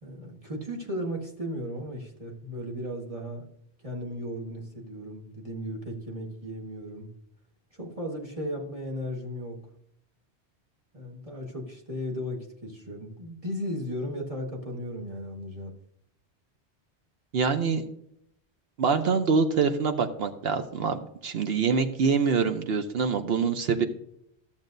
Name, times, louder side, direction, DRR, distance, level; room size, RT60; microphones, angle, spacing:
voice 1, 0.0-3.5 3.8-7.1 7.7-9.6 10.9-15.7, equal, 30° right, 0 dB, 1.6 m, -36 dB
voice 2, 17.3-17.8 18.8-23.8, right 5 dB, 65° right, 8 dB, 0.9 m, -25 dB
14.0 x 7.3 x 2.6 m, 0.73 s
omnidirectional pair, 1.1 m